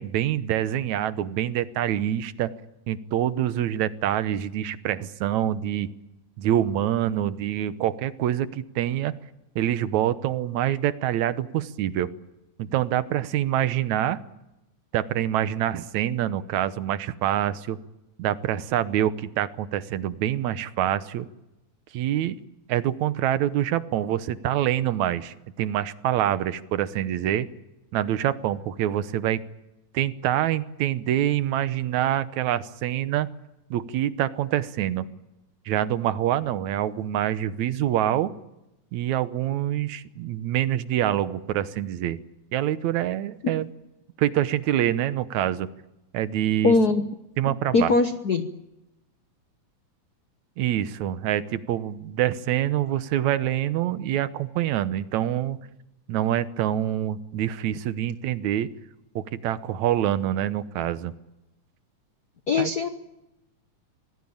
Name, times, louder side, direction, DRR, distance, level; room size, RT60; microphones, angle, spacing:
voice 1, 0.0-2.5 2.9-5.9 6.4-9.1 9.6-12.1 12.6-14.2 14.9-17.8 18.2-21.3 21.9-22.4 22.7-27.5 27.9-29.4 29.9-33.3 33.7-35.1 35.7-38.3 38.9-42.2 42.5-43.7 44.2-45.7 46.1-46.7 47.4-47.9 50.6-55.6 56.1-58.7 59.2-61.1 62.6-62.7, right 11 dB, 75° right, 14 dB, 2.3 m, -26 dB
voice 2, 46.6-47.1 47.5-48.5 62.5-62.9, left 3 dB, 65° left, 8 dB, 0.9 m, -21 dB
25.5 x 18.5 x 8.7 m, 0.93 s
omnidirectional pair, 3.4 m